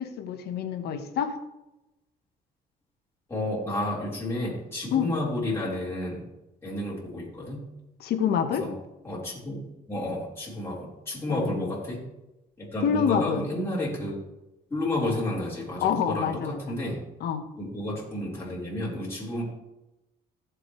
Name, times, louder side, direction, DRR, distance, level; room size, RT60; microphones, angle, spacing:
voice 1, 0.0-1.4 4.9-5.1 8.0-8.7 11.3-11.7 12.8-13.4 15.8-16.8 17.2-17.5, left 8 dB, 70° left, 6 dB, 1.5 m, -27 dB
voice 2, 3.3-6.2 6.6-7.6 8.6-8.7 9.0-12.0 12.6-14.2 14.7-17.0 17.6-19.4, left 1 dB, 15° left, -7 dB, 4.5 m, -31 dB
15.5 x 7.6 x 3.3 m, 0.96 s
cardioid pair, 110°, 17 cm